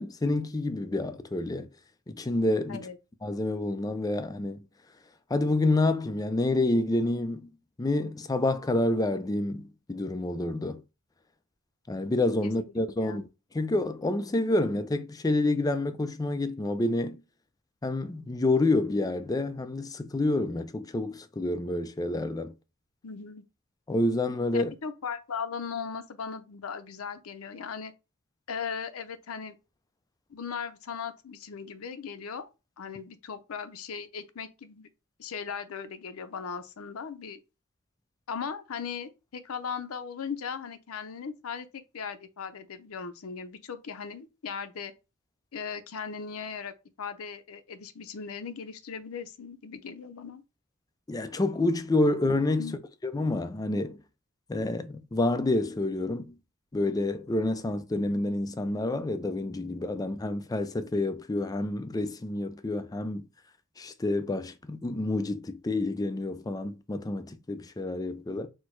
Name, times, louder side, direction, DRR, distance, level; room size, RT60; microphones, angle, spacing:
voice 1, 0.0-1.7 2.1-2.8 3.2-4.6 5.3-7.5 7.8-10.8 11.9-13.3 13.5-17.2 17.8-22.5 23.9-24.7 51.1-52.8 53.0-54.0 54.5-56.4 56.7-63.3 63.8-68.5, left 2 dB, 15° left, 0.4 m, -28 dB
voice 2, 13.0-13.3 23.0-23.4 24.5-27.9 28.5-29.5 30.3-32.5 32.8-34.9 35.2-37.4 38.3-44.9 45.5-50.4 52.6-52.8, left 6 dB, 80° left, 0.6 m, -38 dB
4.4 x 2.1 x 4.4 m
head